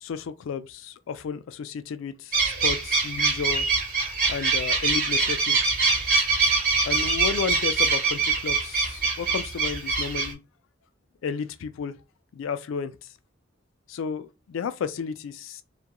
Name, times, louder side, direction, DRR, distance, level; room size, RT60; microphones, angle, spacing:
voice 1, 0.0-3.7 4.3-5.6 6.8-10.4 11.2-11.9 12.3-12.9 13.9-15.6, left 6 dB, 70° left, 0.3 m, -32 dB
sound 1, 2.3-10.3, right 4 dB, 45° right, 0.9 m, -24 dB
2.3 x 2.2 x 2.8 m
head